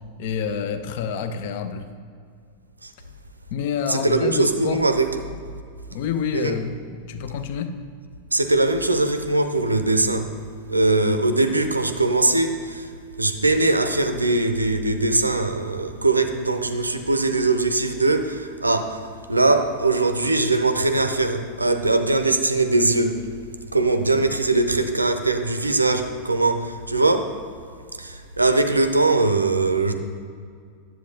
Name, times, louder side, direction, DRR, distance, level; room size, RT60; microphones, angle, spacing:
voice 1, 0.2-1.9 3.5-4.8 5.9-7.7, left 7 dB, 50° left, 10 dB, 0.4 m, -28 dB
voice 2, 3.9-5.2 6.3-6.5 8.3-10.3 10.7-12.9 13.2-19.0 19.3-23.2 23.7-27.3 28.0-29.9, right 2 dB, 80° right, 8 dB, 0.4 m, -21 dB
9.7 x 7.6 x 2.7 m, 2.2 s
figure-of-eight pair, 90°, 0 cm